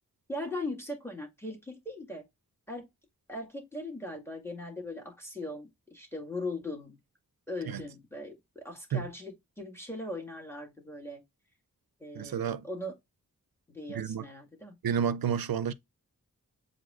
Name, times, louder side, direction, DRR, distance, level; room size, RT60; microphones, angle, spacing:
voice 1, 0.3-2.3 2.7-2.9 3.3-7.0 7.5-11.2 12.0-12.9 13.7-14.7, left 1 dB, 5° left, 1.7 m, -39 dB
voice 2, 12.2-12.6 13.9-14.2 14.8-15.7, right 7 dB, 90° right, 0.5 m, -30 dB
7.5 x 2.7 x 2.4 m
wide cardioid pair, 55°, 35 cm